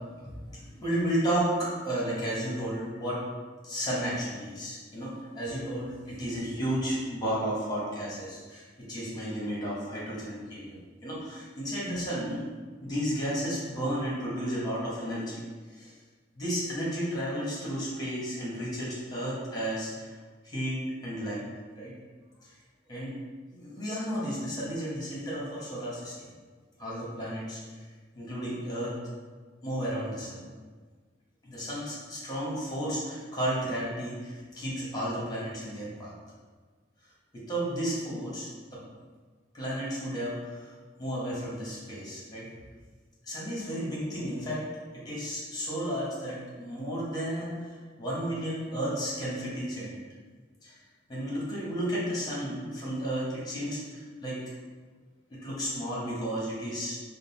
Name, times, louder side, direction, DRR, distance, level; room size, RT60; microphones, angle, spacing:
voice 1, 0.2-3.2 3.6-12.5 12.8-15.4 15.7-15.9 16.3-20.1 20.4-21.5 21.8-21.9 22.4-22.5 22.9-23.2 23.5-26.3 26.8-27.8 28.1-29.0 29.6-30.4 31.4-36.1 37.3-38.8 39.5-40.7 41.0-42.5 43.2-44.6 44.9-50.0 50.6-50.7 51.1-54.4 55.3-57.0, equal, 20° left, -6 dB, 1.0 m, -33 dB
3.8 x 2.0 x 4.0 m, 1.5 s
head